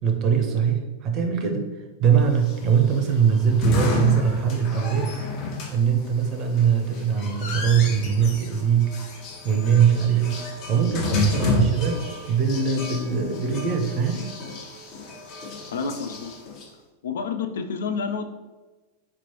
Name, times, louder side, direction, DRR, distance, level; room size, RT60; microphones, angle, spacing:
voice 1, 0.0-1.7 2.0-5.1 5.7-8.9 9.4-14.3, right 7 dB, 35° right, 4 dB, 0.6 m, -22 dB
sound 1, 2.3-16.6, left 3 dB, 40° left, 0.8 m, -31 dB
voice 2, 15.7-16.3 17.0-18.3, left 5 dB, 60° left, 6 dB, 0.3 m, -29 dB
4.2 x 3.0 x 2.8 m, 1.2 s
figure-of-eight pair, 90°, 0 cm